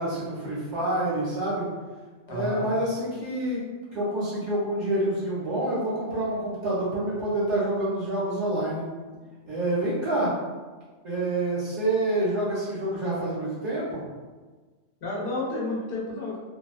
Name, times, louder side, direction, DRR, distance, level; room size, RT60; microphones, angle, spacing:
voice 1, 0.0-1.7 2.3-3.6 3.9-8.9 9.5-10.3 11.0-14.0, right 1 dB, 70° right, -8 dB, 1.2 m, -27 dB
voice 2, 2.3-2.7 15.0-16.4, left 2 dB, 55° left, -4 dB, 0.7 m, -31 dB
2.6 x 2.2 x 2.4 m, 1.4 s
omnidirectional pair, 1.3 m